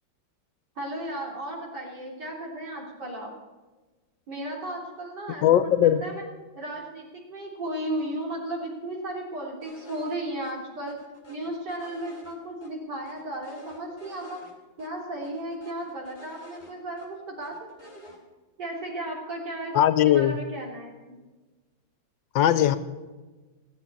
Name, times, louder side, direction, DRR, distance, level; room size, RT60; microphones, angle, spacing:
voice 1, 0.8-3.3 4.3-6.2 6.6-11.0 11.3-14.4 14.8-18.2 18.6-19.8 20.0-21.2, right 1 dB, 65° right, -2 dB, 4.0 m, -35 dB
voice 2, 5.4-6.1 19.7-20.4 22.3-22.8, left 11 dB, 80° left, 13 dB, 1.5 m, -19 dB
sound 1, 9.6-10.2 10.4-10.5 10.9-12.7 13.0-14.5 14.8-14.9 15.2-17.1 17.4-18.2, left 3 dB, 15° left, 2.9 m, -51 dB
16.5 x 7.6 x 8.5 m, 1.3 s
omnidirectional pair, 2.0 m